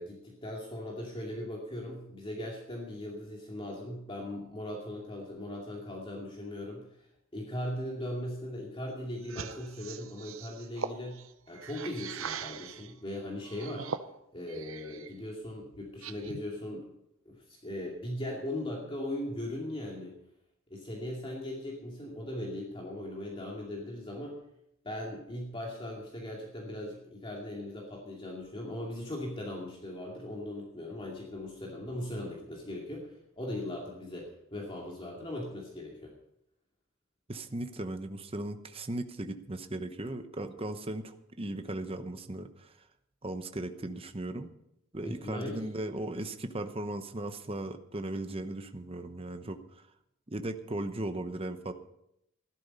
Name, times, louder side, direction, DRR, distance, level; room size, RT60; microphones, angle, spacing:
voice 1, 0.0-6.9 7.3-11.2 11.5-13.9 14.3-16.9 17.3-20.1 20.7-24.4 24.8-36.1 45.0-45.7, left 1 dB, 25° left, -2 dB, 2.4 m, -39 dB
sound 1, 9.2-12.9 13.4-15.1 15.5-16.5, right 6 dB, 80° right, 0.8 m, -41 dB
voice 2, 37.3-42.7 43.2-44.5 44.9-49.6 50.3-51.7, right 1 dB, 30° right, 8 dB, 1.0 m, -37 dB
14.0 x 12.0 x 5.5 m, 0.79 s
head